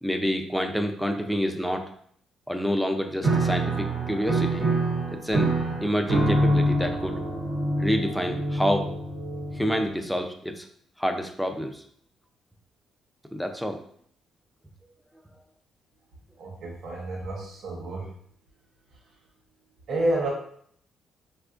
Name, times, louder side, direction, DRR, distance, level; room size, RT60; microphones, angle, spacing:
voice 1, 0.0-1.9 2.5-4.6 5.1-5.5 5.8-7.2 7.8-8.9 9.5-10.6 11.0-11.8 13.3-13.8, equal, ahead, 5 dB, 0.4 m, -28 dB
Piano, 3.2-10.0, right 1 dB, 40° right, 1.2 m, -26 dB
voice 2, 16.4-18.1 19.9-20.3, right 1 dB, 65° right, -2 dB, 0.8 m, -29 dB
4.1 x 2.5 x 2.3 m, 0.63 s
cardioid pair, 90°, 0 cm